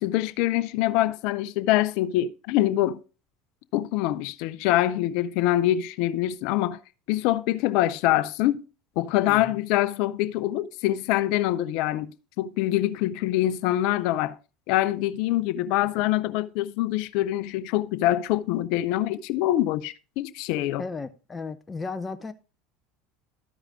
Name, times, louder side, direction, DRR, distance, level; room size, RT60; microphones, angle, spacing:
voice 1, 0.0-3.0 3.7-6.8 7.1-8.6 9.0-14.4 14.7-20.8, left 14 dB, 65° left, 0.6 m, -25 dB
voice 2, 9.3-9.6 20.8-22.3, left 4 dB, 20° left, 0.7 m, -35 dB
13.0 x 4.8 x 3.6 m
hypercardioid pair, 85°, 0 cm